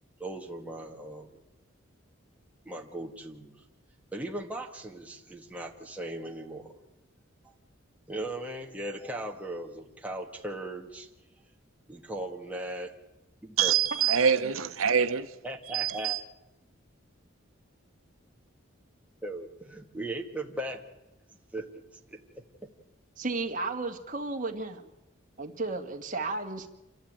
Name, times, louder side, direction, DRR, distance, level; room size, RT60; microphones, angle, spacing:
voice 1, 0.2-1.3 2.6-3.6 4.1-6.8 8.1-11.1 11.9-13.0 13.4-13.8 15.4-16.2 19.2-20.8 21.5-21.7 22.1-22.2, right 1 dB, 5° right, 1.7 m, -38 dB
voice 2, 13.6-15.3 15.7-16.2, right 7 dB, 85° right, 1.0 m, -25 dB
voice 3, 23.2-24.8 25.4-26.7, right 3 dB, 40° right, 2.0 m, -33 dB
27.5 x 14.0 x 9.0 m
head